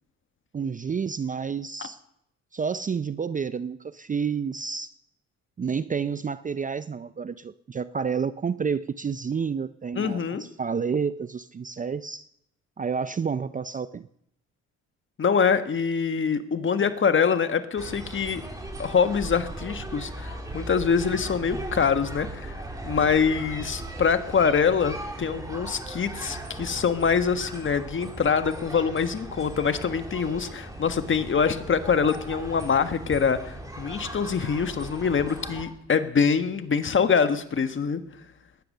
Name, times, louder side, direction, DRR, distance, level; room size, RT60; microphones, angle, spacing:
voice 1, 0.5-2.0 2.5-4.9 5.6-12.3 12.8-14.1, right 6 dB, 25° right, 15 dB, 0.5 m, -30 dB
voice 2, 9.9-10.5 15.2-18.4 18.8-22.6 22.8-38.0, left 6 dB, 40° left, 9 dB, 1.5 m, -24 dB
sound 1, 17.8-35.6, right 1 dB, 10° right, 3.9 m, -38 dB
20.0 x 9.9 x 6.6 m, 0.76 s
cardioid pair, 90°, 30 cm